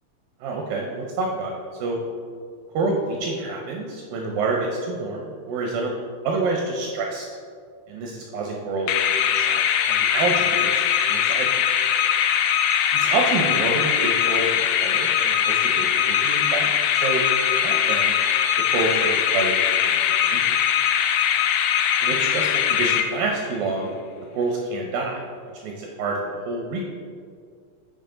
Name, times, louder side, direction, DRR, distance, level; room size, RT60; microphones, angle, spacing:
voice 1, 0.4-1.5 1.8-2.0 2.7-5.9 6.2-7.3 7.9-11.5 12.9-17.2 17.6-18.1 18.7-20.5 22.0-23.9 24.3-25.2 25.6-26.2 26.5-26.8, right 3 dB, 80° right, 0 dB, 2.0 m, -28 dB
sound 1, 8.9-23.5, left 9 dB, 85° left, 2.6 m, -21 dB
9.0 x 5.1 x 3.8 m, 2.2 s
omnidirectional pair, 4.8 m